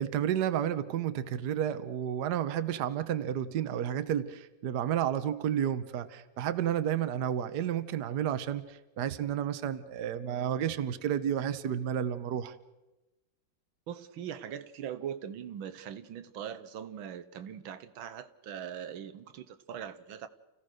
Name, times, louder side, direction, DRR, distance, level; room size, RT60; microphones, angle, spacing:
voice 1, 0.0-12.5, right 10 dB, 60° right, 11 dB, 1.4 m, -31 dB
voice 2, 13.9-20.3, right 9 dB, 85° right, 11 dB, 1.7 m, -41 dB
29.5 x 15.5 x 6.5 m, 1.0 s
omnidirectional pair, 2.1 m